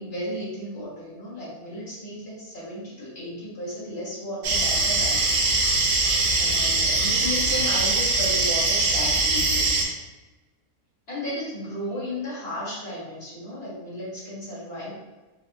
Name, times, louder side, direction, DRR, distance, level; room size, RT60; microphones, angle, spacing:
voice 1, 0.0-5.4 6.3-10.0 11.1-15.0, left 1 dB, 45° left, -9 dB, 1.5 m, -34 dB
sound 1, 4.4-9.8, right 3 dB, 75° right, 1.0 m, -22 dB
4.2 x 2.0 x 2.5 m, 1.1 s
omnidirectional pair, 1.5 m